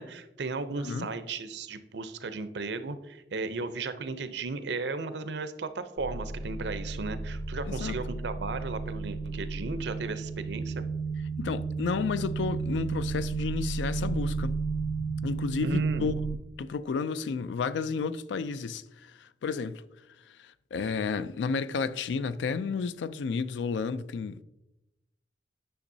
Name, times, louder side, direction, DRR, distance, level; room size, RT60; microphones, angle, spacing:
voice 1, 0.0-10.9 15.6-16.1, right 3 dB, 70° right, 0.6 m, -35 dB
voice 2, 0.8-1.1 7.6-8.0 11.4-14.5 15.2-16.1 16.6-18.8 19.2-19.8 20.4-24.4, left 5 dB, 75° left, 0.4 m, -32 dB
sound 1, 6.0-16.4, right 4 dB, 30° left, 0.7 m, -33 dB
10.0 x 6.1 x 2.7 m
head